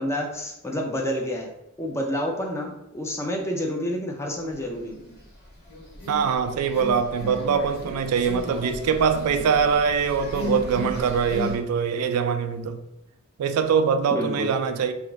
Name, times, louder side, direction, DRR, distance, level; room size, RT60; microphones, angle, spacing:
voice 1, 0.0-1.5 1.8-5.0 14.1-14.5, equal, 10° left, 0.4 m, -29 dB
sound 1, 4.6-5.3 5.6-11.6, left 2 dB, 50° left, 1.1 m, -35 dB
voice 2, 6.1-12.8 13.4-14.9, right 6 dB, 85° right, 0.3 m, -23 dB
2.4 x 2.3 x 3.0 m
head